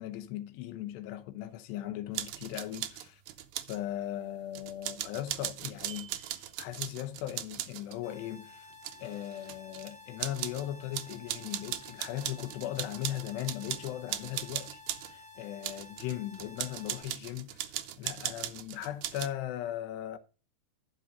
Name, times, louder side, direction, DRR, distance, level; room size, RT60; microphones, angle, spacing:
voice 1, 0.0-3.2 3.7-8.7 9.0-14.8 15.1-20.2, left 13 dB, 90° left, 3.0 m, -38 dB
sound 1, 2.1-3.8 4.5-8.0 8.7-9.9 10.2-10.7 10.9-15.1 15.6-19.3, right 13 dB, 85° right, 2.0 m, -39 dB
sound 2, 8.0-17.0, left 3 dB, 35° left, 0.8 m, -52 dB
11.0 x 5.1 x 5.2 m
omnidirectional pair, 4.7 m